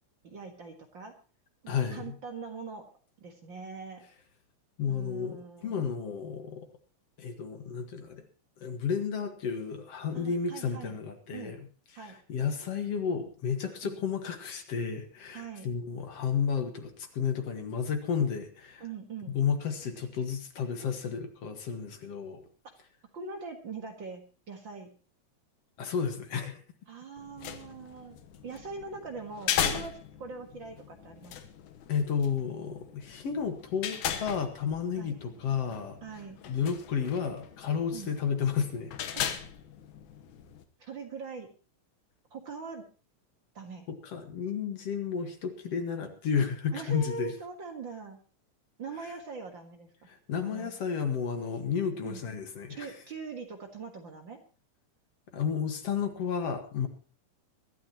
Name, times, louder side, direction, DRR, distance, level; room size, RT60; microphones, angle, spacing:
voice 1, 0.2-1.1 1.6-2.8 3.2-4.0 4.9-5.9 10.1-11.0 11.3-11.6 12.0-12.2 13.8-14.0 15.3-15.7 18.8-19.4 23.1-24.2 24.5-24.9 26.9-31.3 35.0-35.1 36.0-36.4 37.9-38.1 39.1-39.4 40.8-41.5 42.3-42.8 43.6-43.9 46.7-48.2 48.8-49.9 50.4-50.7 52.0-52.2 52.7-54.4, right 4 dB, 45° right, 5 dB, 2.0 m, -42 dB
voice 2, 1.7-2.1 4.8-6.7 7.2-8.2 8.6-11.6 11.9-18.8 19.3-22.4 25.8-26.6 31.9-36.0 36.5-39.0 43.9-47.3 50.1-52.9 55.3-56.9, left 6 dB, 60° left, 7 dB, 2.5 m, -32 dB
sound 1, 27.2-40.6, left 9 dB, 90° left, 2.6 m, -38 dB
23.5 x 12.5 x 3.0 m, 0.35 s
omnidirectional pair, 3.3 m